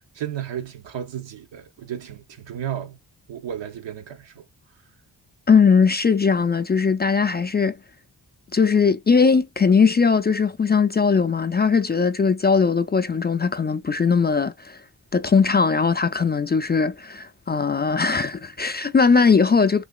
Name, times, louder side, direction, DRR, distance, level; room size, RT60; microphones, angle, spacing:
voice 1, 0.1-3.0 3.3-4.4, right 10 dB, 85° right, 0.9 m, -33 dB
voice 2, 5.5-7.8 8.5-14.8 15.1-19.8, left 5 dB, 25° left, 0.3 m, -19 dB
3.9 x 2.7 x 2.3 m
cardioid pair, 75°, 43 cm